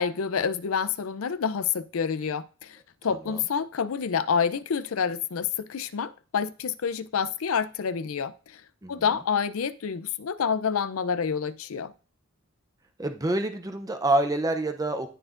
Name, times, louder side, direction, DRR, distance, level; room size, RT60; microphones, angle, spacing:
voice 1, 0.0-8.6 8.9-11.9, left 6 dB, 70° left, 0.5 m, -28 dB
voice 2, 13.0-15.1, right 1 dB, 15° right, 0.6 m, -26 dB
12.5 x 4.4 x 2.5 m
head